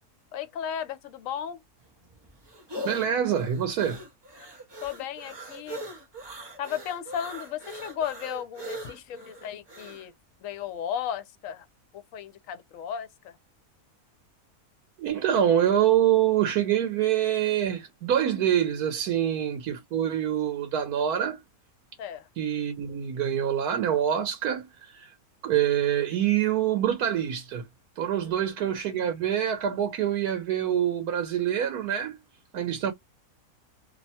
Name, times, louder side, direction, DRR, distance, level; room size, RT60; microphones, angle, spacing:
voice 1, 0.3-1.6 4.8-5.8 6.6-10.1 10.4-11.7 11.9-13.4 22.0-22.3 28.2-28.3 32.6-32.7, left 9 dB, 65° left, 1.0 m, -35 dB
sound 1, 1.8-10.1, equal, 25° right, 0.5 m, -41 dB
voice 2, 2.8-4.0 15.0-21.4 22.4-25.1 25.4-27.6 28.0-32.2 32.5-32.9, right 10 dB, 90° right, 1.2 m, -25 dB
2.9 x 2.1 x 2.7 m
omnidirectional pair, 1.6 m